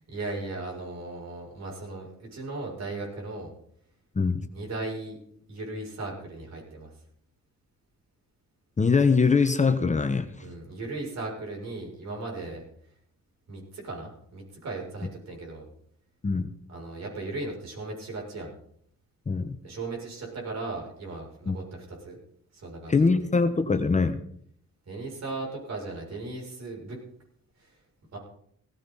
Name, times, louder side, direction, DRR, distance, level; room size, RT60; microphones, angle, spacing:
voice 1, 0.1-3.5 4.5-5.2 5.5-6.9 10.4-12.6 13.5-15.7 16.7-18.5 19.6-22.2 22.5-22.9 24.9-27.0 27.6-27.8 28.1-28.2, right 2 dB, 60° right, 0 dB, 6.9 m, -37 dB
voice 2, 4.1-4.5 8.8-10.3 16.2-16.5 19.3-19.6 21.5-21.6 22.9-24.2, left 4 dB, 25° left, 8 dB, 1.1 m, -22 dB
17.0 x 15.0 x 4.1 m, 0.65 s
cardioid pair, 90°, 30 cm